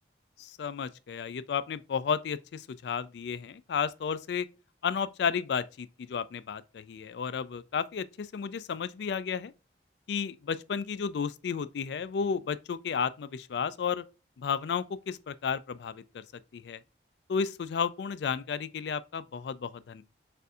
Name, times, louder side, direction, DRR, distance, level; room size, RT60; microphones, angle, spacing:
voice 1, 0.4-4.5 4.8-9.5 10.1-14.0 14.4-16.2 16.5-16.8 17.3-20.0, left 6 dB, 65° left, 0.3 m, -32 dB
6.6 x 2.6 x 2.3 m
head